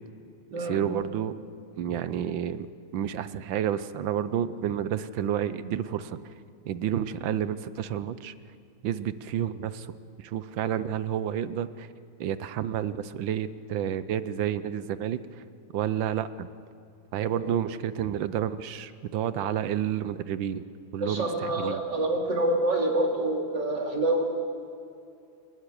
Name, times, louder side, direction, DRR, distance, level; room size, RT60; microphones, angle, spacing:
voice 1, 0.6-1.3 1.8-2.7 2.9-6.2 6.7-8.3 8.8-9.9 10.2-11.9 12.2-15.2 15.7-16.5 17.1-20.6 20.9-21.8, right 10 dB, 70° right, 14 dB, 1.4 m, -30 dB
voice 2, 21.0-24.2, right 1 dB, 55° right, 0 dB, 3.4 m, -27 dB
27.0 x 11.5 x 9.9 m, 2.4 s
omnidirectional pair, 2.3 m